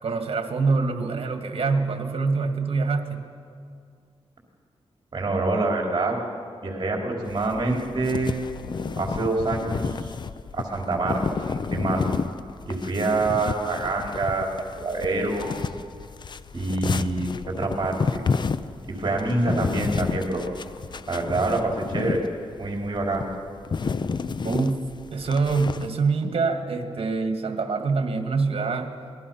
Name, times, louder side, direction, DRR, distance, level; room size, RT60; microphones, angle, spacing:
voice 1, 0.0-3.2 24.4-24.8 25.1-28.9, right 4 dB, 60° right, 6 dB, 2.0 m, -25 dB
voice 2, 5.1-6.1 6.6-8.4 9.0-10.1 10.5-12.0 12.6-15.5 16.5-18.2 18.9-20.4 21.1-22.2 22.6-23.2, right 2 dB, 40° right, 0 dB, 4.3 m, -26 dB
sound 1, 7.3-25.9, left 5 dB, 45° left, 0.6 m, -31 dB
26.5 x 20.5 x 5.7 m, 2.2 s
wide cardioid pair, 125°, 11 cm